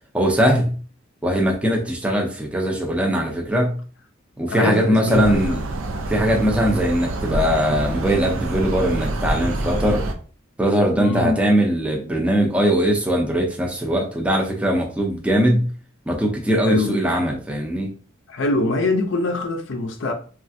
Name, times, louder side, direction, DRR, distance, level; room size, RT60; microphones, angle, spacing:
voice 1, 0.1-0.8 1.2-3.8 4.4-5.6 6.1-10.0 10.6-15.7 16.1-17.9, equal, 5° right, 0.4 m, -20 dB
voice 2, 4.5-5.6 11.0-11.4 16.6-17.0 18.3-20.1, left 2 dB, 65° left, 0.4 m, -23 dB
sound 1, 5.1-10.1, right 2 dB, 80° right, 0.5 m, -26 dB
3.2 x 2.4 x 2.6 m
head